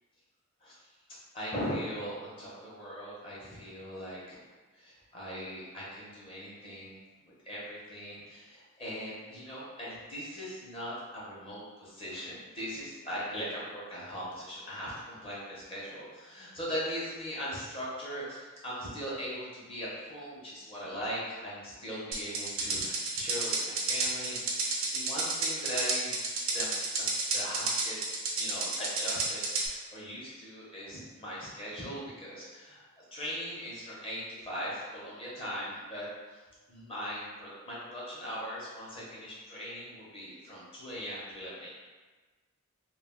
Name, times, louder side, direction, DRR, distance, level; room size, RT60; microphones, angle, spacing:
voice 1, 1.1-4.4 4.7-7.0 7.2-24.6 24.9-26.1 26.5-27.1 27.3-28.0 28.4-36.1 36.7-41.7, equal, 25° left, -7 dB, 0.7 m, -40 dB
sound 1, 22.1-29.7, right 3 dB, 60° right, 0.5 m, -31 dB
2.3 x 2.2 x 3.5 m, 1.3 s
head